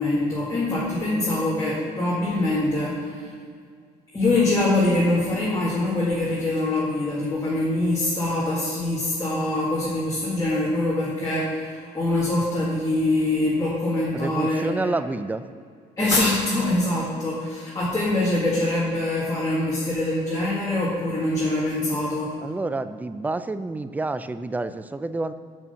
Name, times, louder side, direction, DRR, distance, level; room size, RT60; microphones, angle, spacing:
voice 1, 0.0-3.3 4.1-14.9 16.0-22.4, left 2 dB, 20° left, -7 dB, 2.0 m, -24 dB
voice 2, 14.1-15.4 22.4-25.3, right 2 dB, 10° right, 12 dB, 0.3 m, -28 dB
6.2 x 6.0 x 6.9 m, 2.1 s
cardioid pair, 110°, 17 cm